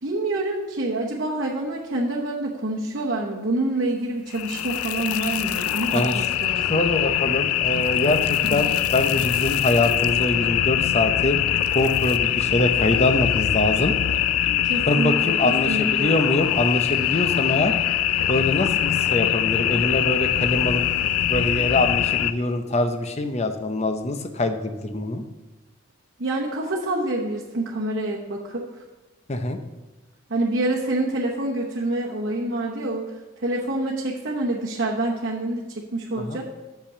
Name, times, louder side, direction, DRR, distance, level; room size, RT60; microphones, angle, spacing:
voice 1, 0.0-6.8 8.4-8.6 14.7-16.2 26.2-28.7 30.3-33.1 33.4-36.4, right 2 dB, 55° right, -3 dB, 0.9 m, -27 dB
sound 1, 4.3-22.3, left 11 dB, 90° left, 0.4 m, -23 dB
voice 2, 5.9-6.3 6.7-11.4 11.7-13.9 14.9-17.8 18.3-20.8 21.3-25.2 29.3-29.6 36.2-36.4, left 2 dB, 30° left, 8 dB, 0.6 m, -24 dB
6.7 x 5.8 x 6.6 m, 1.1 s
head